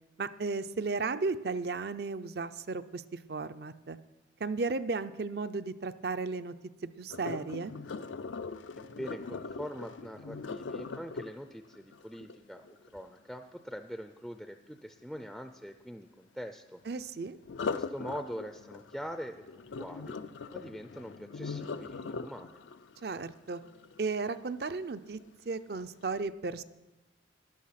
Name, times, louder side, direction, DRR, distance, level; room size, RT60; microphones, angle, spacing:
voice 1, 0.2-4.0 4.4-6.5 7.0-7.7 16.9-17.4 23.0-23.6 24.0-25.2 25.5-26.6, right 4 dB, 55° right, 13 dB, 0.5 m, -34 dB
Sink (filling or washing), 7.1-13.1 17.4-24.5 25.0-25.3 25.8-25.9, left 4 dB, 85° left, 0.5 m, -41 dB
voice 2, 8.8-12.7 12.9-16.8 17.7-20.2 20.5-22.6, equal, ahead, 7 dB, 0.4 m, -43 dB
13.0 x 11.0 x 5.8 m, 1.1 s
head